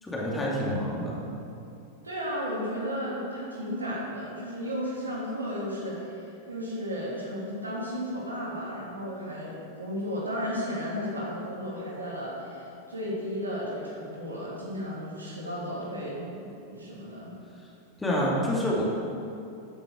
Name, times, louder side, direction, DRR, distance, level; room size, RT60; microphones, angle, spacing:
voice 1, 0.0-1.2 18.0-18.8, equal, 10° left, -5 dB, 2.5 m, -27 dB
voice 2, 2.0-17.4, equal, 80° right, -6 dB, 2.9 m, -34 dB
13.5 x 8.7 x 3.8 m, 2.7 s
figure-of-eight pair, 90°, 0 cm